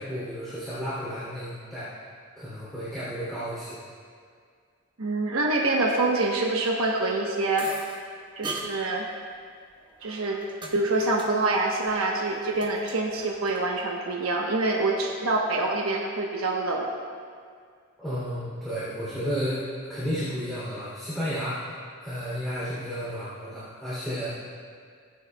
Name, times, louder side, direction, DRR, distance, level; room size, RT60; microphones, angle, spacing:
voice 1, 0.0-1.9 2.3-3.8 18.0-21.7 22.0-24.3, equal, ahead, -12 dB, 2.9 m, -32 dB
voice 2, 5.0-7.7 8.4-9.1 10.0-10.4 10.7-16.9, right 2 dB, 80° right, -1 dB, 1.1 m, -26 dB
sound 1, 7.6-8.0 8.4-8.7 9.7-10.7 11.0-11.3 11.5-12.0 12.3-13.6, right 1 dB, 20° right, 1.1 m, -39 dB
18.5 x 9.5 x 2.3 m, 2.1 s
head